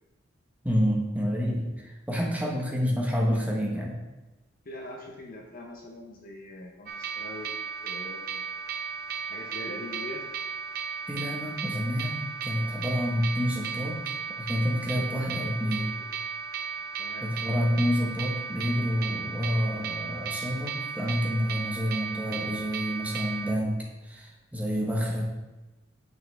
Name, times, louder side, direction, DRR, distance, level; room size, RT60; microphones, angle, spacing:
voice 1, 0.6-4.0 11.1-14.0 14.4-15.9 17.2-25.3, equal, 10° right, -2 dB, 1.3 m, -28 dB
voice 2, 4.6-7.5 7.8-8.6 9.3-10.2 17.0-17.3, left 1 dB, 45° left, 0 dB, 0.9 m, -42 dB
sound 1, 6.9-23.5, right 6 dB, 50° right, 0.5 m, -35 dB
9.3 x 5.9 x 3.5 m, 1.1 s
head